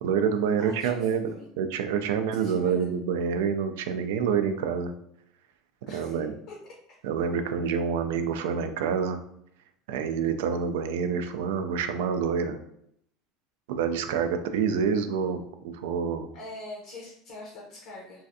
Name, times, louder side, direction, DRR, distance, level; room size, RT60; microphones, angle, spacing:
voice 1, 0.0-4.9 5.9-6.3 7.0-9.2 9.9-12.6 13.7-16.3, right 6 dB, 85° right, 8 dB, 0.3 m, -27 dB
voice 2, 0.6-1.5 2.3-2.8 5.9-6.2 6.5-6.6 16.3-18.2, left 2 dB, 65° left, -2 dB, 0.7 m, -43 dB
3.1 x 2.5 x 2.6 m, 0.73 s
supercardioid pair, 135°, 0 cm